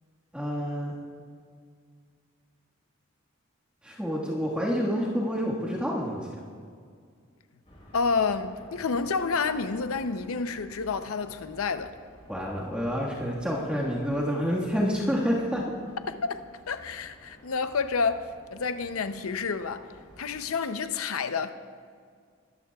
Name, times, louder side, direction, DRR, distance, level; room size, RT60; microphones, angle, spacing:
voice 1, 0.3-1.0 3.8-6.3 12.3-15.6, equal, 5° right, 1.6 m, -28 dB
sound 1, 7.6-20.5, equal, 35° left, 3.8 m, -53 dB
voice 2, 7.9-11.9 16.1-19.9 20.2-21.6, left 5 dB, 85° left, 0.7 m, -29 dB
22.0 x 14.0 x 2.4 m
head